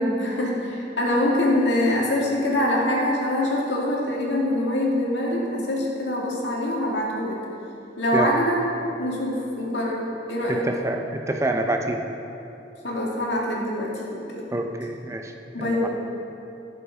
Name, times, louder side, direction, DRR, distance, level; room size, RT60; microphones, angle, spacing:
voice 1, 0.0-7.4 8.0-8.6 9.0-10.7 12.8-14.4 15.5-15.9, left 1 dB, 70° left, -3 dB, 2.3 m, -24 dB
voice 2, 10.5-12.0 14.5-15.3 15.6-15.9, right 1 dB, 15° right, 3 dB, 0.6 m, -27 dB
15.0 x 6.9 x 4.8 m, 2.9 s
head